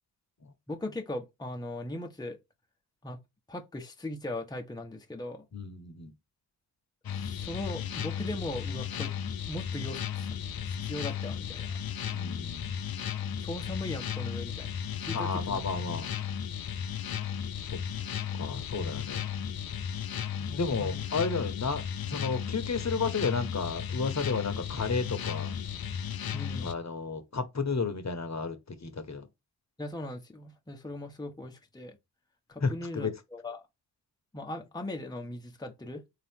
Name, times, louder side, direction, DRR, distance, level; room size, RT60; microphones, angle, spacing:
voice 1, 0.7-2.4 3.0-3.2 3.5-5.5 7.2-9.1 9.5-11.8 13.4-15.6 20.4-21.0 26.3-26.7 29.8-32.0 32.5-33.6 34.3-36.0, left 1 dB, 10° left, 1.1 m, -39 dB
voice 2, 5.5-6.1 12.1-12.8 15.1-16.1 17.7-17.8 18.3-19.3 20.6-25.5 26.6-29.3 32.6-33.1, left 4 dB, 40° left, 1.3 m, -32 dB
sound 1, 7.0-26.7, left 8 dB, 55° left, 0.8 m, -35 dB
3.7 x 2.9 x 3.6 m
supercardioid pair, 50°, 43 cm